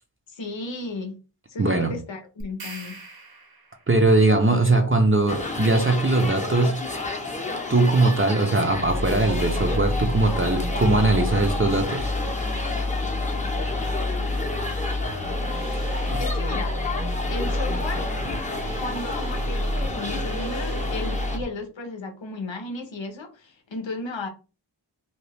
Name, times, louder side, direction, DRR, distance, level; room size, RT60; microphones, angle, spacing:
voice 1, 0.3-1.1 1.5-3.0 16.2-16.7 17.3-18.1 18.8-24.3, left 3 dB, 85° left, 0.7 m, -34 dB
voice 2, 1.6-1.9 3.9-6.8 7.7-12.1 16.1-16.2, right 2 dB, 30° right, 0.5 m, -20 dB
sound 1, 2.4-4.0, right 2 dB, 55° right, 0.8 m, -41 dB
sound 2, 5.3-21.4, left 2 dB, 15° left, 0.7 m, -31 dB
sound 3, 8.6-21.4, left 1 dB, 75° right, 1.1 m, -29 dB
2.8 x 2.2 x 3.2 m
wide cardioid pair, 40°, 44 cm